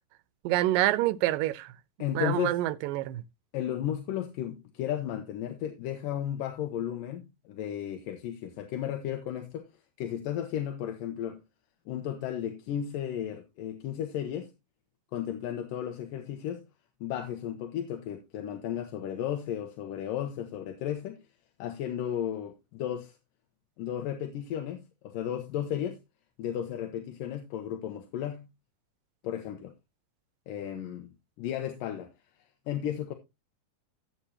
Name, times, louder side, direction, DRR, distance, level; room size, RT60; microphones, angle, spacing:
voice 1, 0.4-1.7 2.1-3.2, right 16 dB, 85° right, 2.3 m, -27 dB
voice 2, 2.0-2.6 3.5-9.7 10.0-11.4 11.9-14.5 15.1-16.7 17.0-21.2 21.6-23.2 23.8-26.0 26.4-28.5 29.2-29.7 30.5-31.1 31.4-32.1 32.7-33.1, left 10 dB, 80° left, 2.7 m, -34 dB
14.0 x 8.1 x 2.8 m
omnidirectional pair, 3.9 m